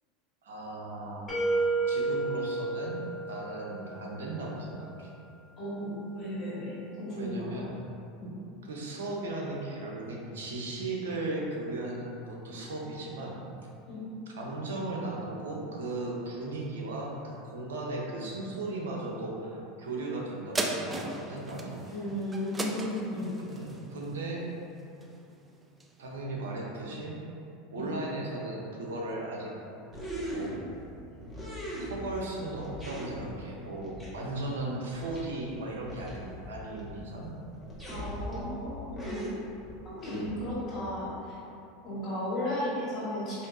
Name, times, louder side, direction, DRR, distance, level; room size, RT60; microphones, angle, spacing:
voice 1, 0.4-1.4 1.9-5.1 7.1-7.7 8.6-13.4 14.3-21.8 23.5-24.5 26.0-27.2 27.7-29.6 30.3-30.6 31.8-37.4, right 2 dB, 85° right, -2 dB, 0.6 m, -36 dB
sound 1, 1.3-4.1, right 3 dB, 20° left, 1.2 m, -30 dB
voice 2, 5.6-7.5 8.2-8.3 13.9-14.0 21.8-23.3 27.8-27.9 37.8-39.2 39.8-41.3 41.8-43.5, left 1 dB, 45° left, -9 dB, 1.3 m, -35 dB
sound 2, 20.5-25.3 25.8-25.9, right 2 dB, 20° right, 0.4 m, -36 dB
sound 3, 29.9-30.9 31.2-32.2 32.5-33.3 33.8-34.1 34.4-34.5 34.9-35.2 35.5-35.6 35.8-36.9 37.2-37.3 37.6-38.5 38.8-40.6, right 1 dB, ahead, 1.1 m, -39 dB
4.4 x 2.7 x 2.5 m, 2.7 s
hypercardioid pair, 95°, 0 cm